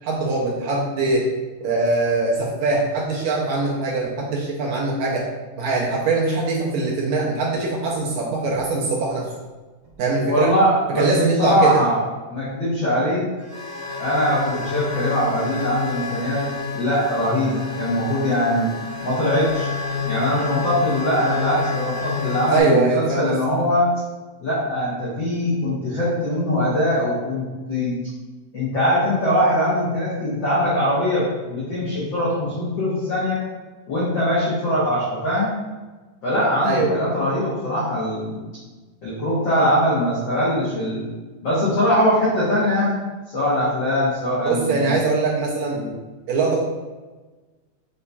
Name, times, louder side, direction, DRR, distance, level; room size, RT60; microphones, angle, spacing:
voice 1, 0.0-1.3 1.6-5.3 5.6-9.3 10.0-10.5 11.0-11.8 22.5-23.4 36.6-37.1 44.4-45.9 46.3-46.6, right 3 dB, 80° right, -4 dB, 1.7 m, -22 dB
sound 1, 8.5-8.6 9.8-9.9 10.5-10.6 11.7-11.8 13.4-22.6, left 5 dB, 45° right, 1.6 m, -29 dB
voice 2, 10.2-11.1 11.4-12.0 12.3-13.3 14.0-16.4 16.7-18.7 19.0-19.7 20.0-23.9 24.4-27.9 28.5-33.4 33.9-35.5 36.2-38.4 39.0-41.0 41.4-43.0 43.3-44.9, equal, 80° left, -8 dB, 1.0 m, -21 dB
7.3 x 2.7 x 2.2 m, 1.2 s
omnidirectional pair, 3.6 m